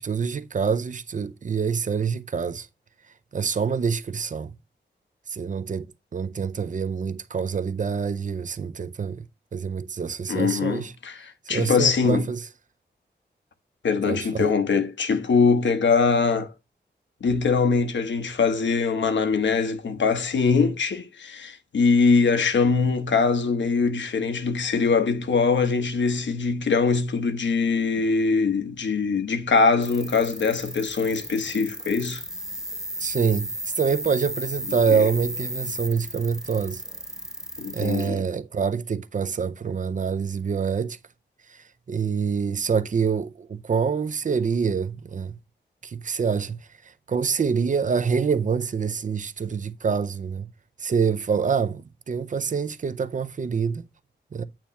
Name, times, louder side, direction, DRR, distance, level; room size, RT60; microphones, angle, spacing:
voice 1, 0.0-2.7 3.3-4.5 5.3-5.9 6.1-9.3 9.5-10.9 11.5-12.5 14.1-14.5 33.0-36.8 37.7-41.0 41.5-45.3 45.8-50.5 50.8-53.8 54.3-54.5, right 6 dB, 45° right, 0.5 m, -26 dB
voice 2, 10.3-12.3 13.8-16.5 17.2-32.2 34.9-35.1 37.6-38.2, left 4 dB, 90° left, 1.1 m, -22 dB
sound 1, 29.8-38.1, equal, 5° right, 0.7 m, -35 dB
8.9 x 3.1 x 5.6 m
wide cardioid pair, 135°, 18 cm